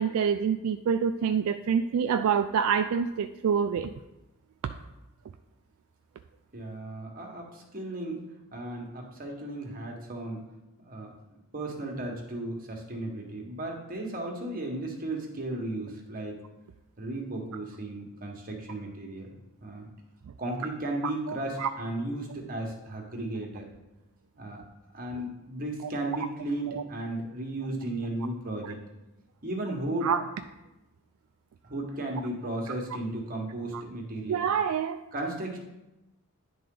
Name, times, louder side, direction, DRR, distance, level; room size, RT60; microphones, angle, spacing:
voice 1, 0.0-3.9 21.3-21.7 26.7-26.8 30.0-30.2 34.3-35.0, right 7 dB, 75° right, 8 dB, 0.3 m, -26 dB
voice 2, 6.5-8.2 8.5-10.4 10.8-11.1 11.5-16.4 17.0-19.3 19.6-19.9 20.4-23.7 24.4-24.6 24.9-28.8 29.4-30.1 31.6-34.4 35.1-35.6, right 1 dB, 40° right, 0 dB, 1.4 m, -35 dB
10.0 x 3.8 x 3.8 m, 0.96 s
head